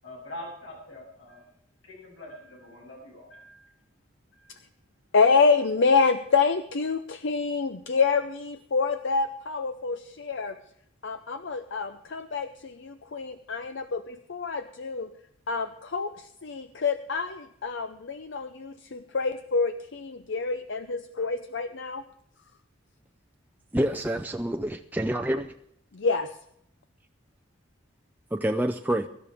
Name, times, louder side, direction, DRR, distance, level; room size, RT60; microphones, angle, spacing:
voice 1, 0.0-1.4 1.8-3.7 4.3-4.6, left 1 dB, 80° left, -2 dB, 7.4 m, -44 dB
voice 2, 5.1-10.6 11.0-15.1 15.5-22.0 25.9-26.4, left 4 dB, 65° left, 9 dB, 0.6 m, -27 dB
voice 3, 23.7-25.5 28.3-29.1, right 1 dB, 10° right, 4 dB, 0.5 m, -27 dB
23.5 x 12.5 x 3.5 m, 0.74 s
head